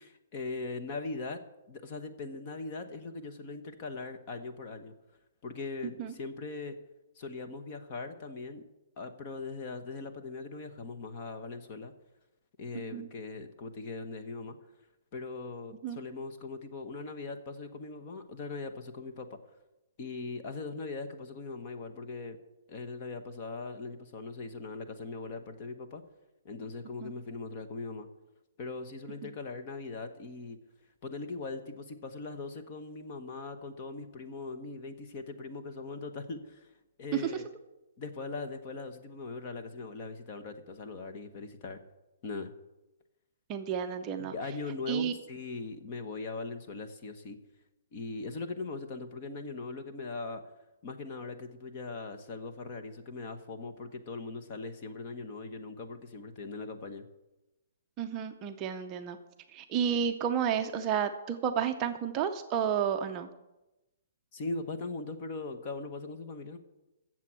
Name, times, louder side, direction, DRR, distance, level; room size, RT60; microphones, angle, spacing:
voice 1, 0.0-1.4 1.7-4.9 5.4-6.8 7.2-8.6 9.0-11.9 12.6-14.6 15.1-19.4 20.0-22.4 22.7-26.0 26.4-28.1 28.6-30.6 31.0-36.7 37.0-37.5 38.0-41.8 42.2-42.5 44.2-47.4 47.9-50.4 50.8-57.1 64.3-66.6, left 3 dB, 30° left, 7 dB, 1.1 m, -40 dB
voice 2, 43.5-44.3 44.9-45.1 58.0-59.2 59.5-63.3, right 8 dB, 20° right, 5 dB, 0.6 m, -31 dB
12.5 x 7.6 x 7.5 m, 0.99 s
hypercardioid pair, 170°, 0 cm